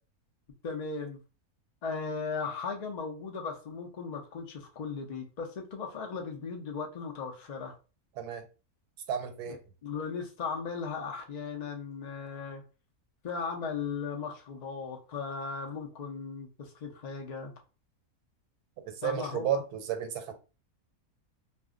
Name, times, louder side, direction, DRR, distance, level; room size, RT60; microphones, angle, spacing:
voice 1, 0.6-1.2 1.8-7.8 9.5-12.6 13.2-17.5 19.0-19.6, left 5 dB, 85° left, 0.3 m, -37 dB
voice 2, 9.1-9.6 18.9-20.3, right 8 dB, 85° right, 1.1 m, -32 dB
2.6 x 2.1 x 3.6 m
omnidirectional pair, 1.6 m